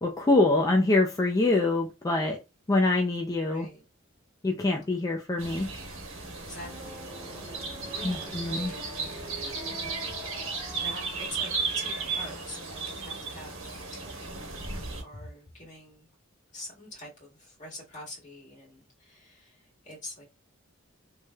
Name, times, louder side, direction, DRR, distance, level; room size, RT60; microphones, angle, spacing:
voice 1, 0.0-2.4 2.7-3.7 4.4-5.7 8.0-8.7, left 2 dB, 15° left, 0.4 m, -25 dB
voice 2, 3.5-3.8 6.4-7.1 7.9-10.5 10.7-16.1 16.5-20.2, left 1 dB, 35° left, 2.0 m, -46 dB
sound 1, 5.4-15.0, right 4 dB, 70° right, 1.2 m, -35 dB
sound 2, 6.5-13.2, left 1 dB, 10° right, 1.8 m, -45 dB
3.1 x 3.1 x 2.2 m
head